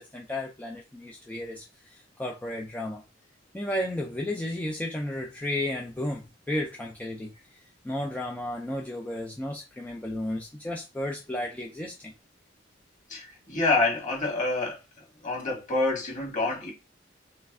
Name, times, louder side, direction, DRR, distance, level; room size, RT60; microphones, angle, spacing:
voice 1, 0.0-3.0 3.5-7.6 7.8-12.1, left 1 dB, 10° left, 0.4 m, -33 dB
voice 2, 13.1-14.8 15.2-16.7, left 3 dB, 40° left, 1.8 m, -27 dB
3.2 x 3.2 x 3.5 m
head